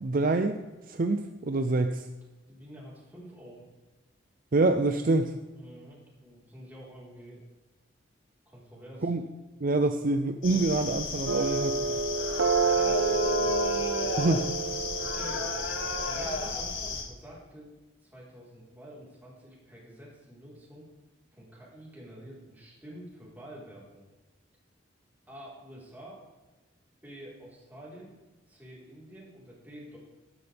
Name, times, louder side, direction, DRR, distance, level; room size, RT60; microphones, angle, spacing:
voice 1, 0.0-0.6 0.9-2.1 4.5-5.3 9.0-9.2 9.6-11.7 14.2-14.5, right 2 dB, 45° right, 7 dB, 0.5 m, -26 dB
voice 2, 2.5-3.7 5.5-7.4 8.5-9.1 11.2-13.7 15.0-15.5 16.0-17.7 18.0-20.9 21.3-24.0 25.3-26.2 27.0-28.1 28.5-30.0, equal, 10° right, -6 dB, 4.0 m, -48 dB
sound 1, 10.4-17.0, left 3 dB, 80° left, 2.3 m, -32 dB
sound 2, 11.3-16.3, right 5 dB, 80° right, 0.9 m, -29 dB
12.5 x 12.5 x 3.4 m, 1.2 s
head